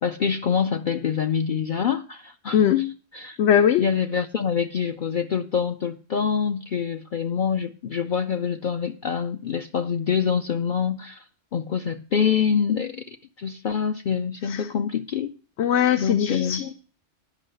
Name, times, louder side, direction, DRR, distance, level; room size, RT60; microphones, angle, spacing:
voice 1, 0.0-3.4 3.8-11.2 11.5-15.3 16.0-16.6, left 7 dB, 50° left, 0.7 m, -25 dB
voice 2, 3.4-3.8 14.5-14.7 15.6-16.7, left 9 dB, 70° left, 1.0 m, -20 dB
11.0 x 5.6 x 7.7 m
omnidirectional pair, 1.3 m